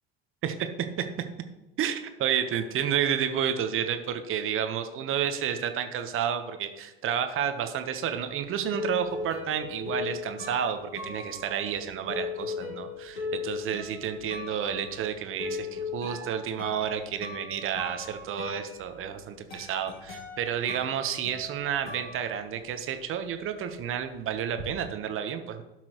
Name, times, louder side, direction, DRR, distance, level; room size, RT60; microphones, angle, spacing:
voice 1, 0.4-1.3 1.8-25.6, right 8 dB, 45° right, 8 dB, 1.1 m, -31 dB
sound 1, 8.1-23.0 23.2-24.7, left 4 dB, 90° left, 2.2 m, -39 dB
12.0 x 6.0 x 3.0 m, 1.0 s
hypercardioid pair, 75°, 30 cm